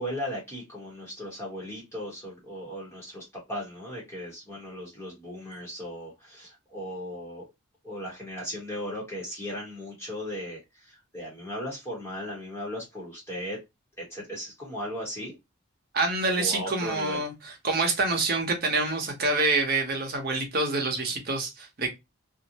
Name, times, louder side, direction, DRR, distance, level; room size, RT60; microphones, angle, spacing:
voice 1, 0.0-7.5 7.8-13.6 14.0-15.3 16.4-17.2, equal, 10° left, 0.8 m, -37 dB
voice 2, 15.9-17.3 17.6-22.0, right 3 dB, 45° right, 0.7 m, -26 dB
2.5 x 2.0 x 2.6 m
head